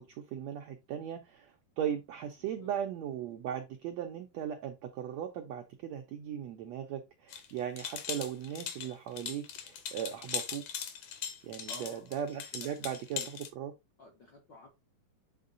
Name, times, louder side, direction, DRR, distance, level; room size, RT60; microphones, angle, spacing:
voice 1, 0.0-10.6 11.4-13.7, right 9 dB, 90° right, 1.5 m, -38 dB
voice 2, 2.4-2.7 11.7-13.3 14.0-14.7, left 1 dB, 80° left, 1.0 m, -54 dB
sound 1, 7.3-13.5, left 8 dB, 65° left, 2.1 m, -40 dB
8.5 x 3.7 x 3.9 m
omnidirectional pair, 4.1 m